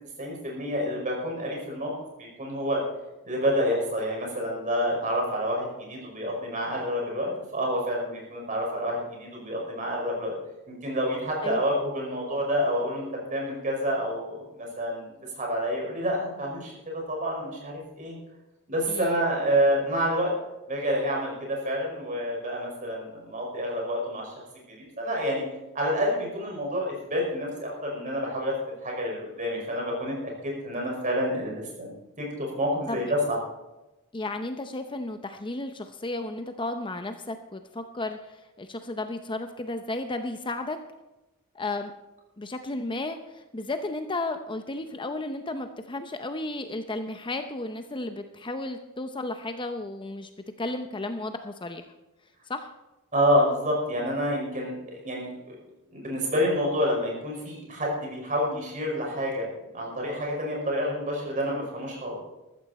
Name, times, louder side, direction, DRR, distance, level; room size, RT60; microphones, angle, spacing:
voice 1, 0.2-1.9 2.2-2.8 3.2-10.3 10.8-15.1 15.4-18.2 18.7-20.3 20.7-24.3 24.7-25.4 25.7-28.5 28.8-33.2 53.1-55.6 55.9-62.2, equal, 35° right, -1 dB, 5.5 m, -28 dB
voice 2, 18.9-19.2 32.9-33.0 34.1-40.8 41.5-41.9 42.4-50.3 50.6-51.8 52.5-52.7, left 2 dB, 20° left, 7 dB, 0.7 m, -33 dB
14.0 x 14.0 x 4.2 m, 1.0 s
head